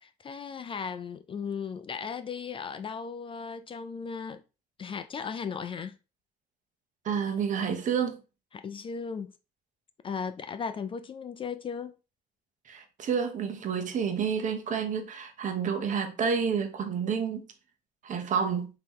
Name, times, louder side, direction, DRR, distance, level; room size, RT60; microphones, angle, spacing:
voice 1, 0.0-4.4 4.8-6.0 8.5-9.3 10.0-11.9, left 6 dB, 30° left, 0.4 m, -36 dB
voice 2, 7.0-8.2 12.7-17.5 18.0-18.7, right 6 dB, 50° right, 1.0 m, -29 dB
5.3 x 2.9 x 3.0 m
cardioid pair, 110°, 17 cm